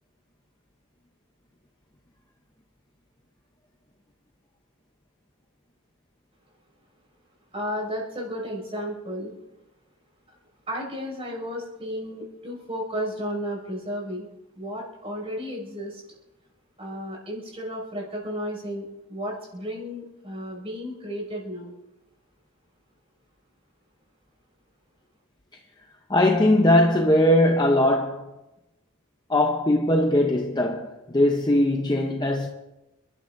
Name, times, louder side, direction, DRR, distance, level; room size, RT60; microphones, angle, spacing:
voice 1, 7.5-9.3 10.7-14.3 14.5-16.0 16.8-21.7, equal, 25° right, 6.0 m, -33 dB
voice 2, 26.1-28.3 29.3-32.5, left 1 dB, 20° left, 0.7 m, -20 dB
29.5 x 12.5 x 2.6 m
head